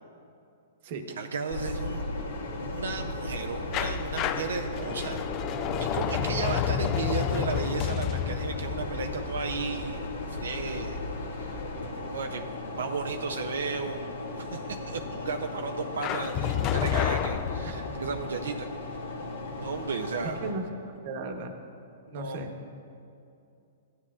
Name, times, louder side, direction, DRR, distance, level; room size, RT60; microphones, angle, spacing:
voice 1, 1.1-2.0 2.6-5.2 5.8-11.0 11.3-18.7 19.6-20.4 22.1-22.4, right 5 dB, 90° right, 4 dB, 0.5 m, -34 dB
sound 1, 1.5-20.5, left 2 dB, 90° left, 1.8 m, -36 dB
sound 2, 3.7-10.5 16.0-18.2, left 9 dB, 30° left, 0.4 m, -30 dB
voice 2, 21.0-21.5 22.1-22.5, right 3 dB, 50° right, 4 dB, 1.1 m, -35 dB
15.0 x 9.9 x 2.4 m, 2.6 s
hypercardioid pair, 145°, 0 cm